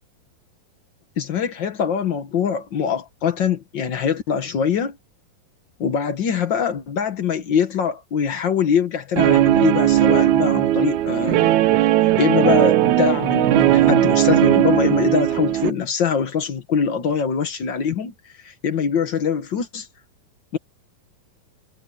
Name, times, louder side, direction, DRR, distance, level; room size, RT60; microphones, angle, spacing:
voice 1, 1.2-5.0 5.8-11.5 12.2-18.1 18.4-19.9 20.5-20.6, left 7 dB, 85° left, 1.0 m, -23 dB
Guitar, 9.2-15.7, right 13 dB, 70° right, 1.9 m, -17 dB
omnidirectional pair, 4.2 m